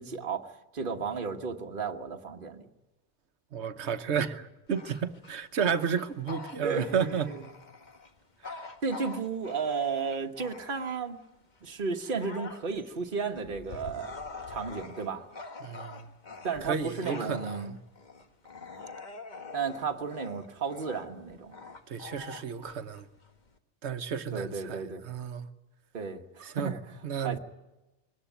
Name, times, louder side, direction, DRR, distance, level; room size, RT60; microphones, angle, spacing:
voice 1, 0.0-2.7 6.6-7.4 8.8-11.2 11.6-14.2 14.5-15.2 16.4-17.7 19.5-21.5 24.3-25.0 25.9-26.8 27.2-27.4, right 5 dB, 50° right, 1.5 m, -33 dB
voice 2, 3.5-7.3 8.4-8.6 15.6-16.1 16.6-17.8 21.9-23.1 23.8-25.5 26.4-26.7 27.0-27.4, right 7 dB, 70° right, 1.3 m, -32 dB
Bark / Growling, 4.7-11.2 11.7-23.6, left 4 dB, 40° left, 1.5 m, -45 dB
22.5 x 18.5 x 9.2 m
omnidirectional pair, 1.2 m